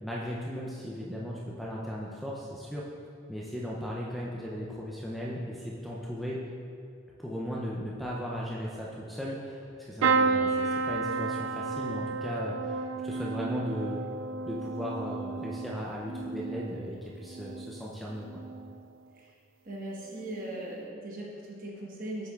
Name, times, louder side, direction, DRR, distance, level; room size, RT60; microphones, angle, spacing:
voice 1, 0.0-2.9 3.3-6.5 7.2-14.1 14.4-18.4, equal, ahead, -5 dB, 0.4 m, -37 dB
sound 1, 10.0-17.8 18.3-18.8 20.1-20.3 20.5-20.6, right 4 dB, 65° right, 0.3 m, -31 dB
voice 2, 19.6-22.3, right 1 dB, 45° right, -3 dB, 1.2 m, -39 dB
7.6 x 6.8 x 2.4 m, 2.4 s
head